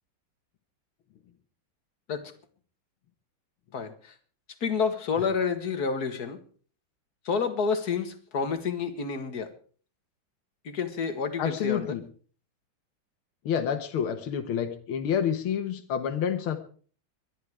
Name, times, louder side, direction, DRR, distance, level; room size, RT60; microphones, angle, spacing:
voice 1, 3.7-4.1 4.6-6.4 7.3-9.5 10.6-11.9, left 5 dB, 50° left, 9 dB, 2.1 m, -29 dB
voice 2, 11.4-12.0 13.5-16.6, left 8 dB, 85° left, 7 dB, 2.1 m, -28 dB
22.0 x 11.5 x 4.8 m, 0.43 s
omnidirectional pair, 2.2 m